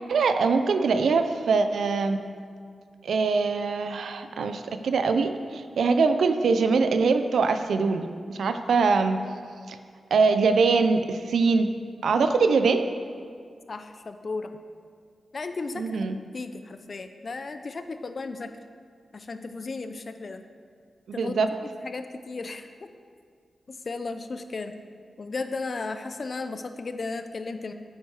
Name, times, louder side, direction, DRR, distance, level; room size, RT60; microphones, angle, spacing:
voice 1, 0.1-2.2 3.0-9.2 9.7-9.8 10.1-11.7 12.0-12.9 15.7-16.2 21.1-21.5, right 4 dB, 85° right, 8 dB, 0.6 m, -23 dB
voice 2, 13.7-14.5 15.3-16.1 16.3-18.5 19.1-20.4 21.1-21.3 21.6-22.9 23.7-24.7 25.2-27.7, left 3 dB, 55° left, 9 dB, 0.7 m, -35 dB
9.1 x 9.0 x 4.9 m, 2.1 s
cardioid pair, 60°, 0 cm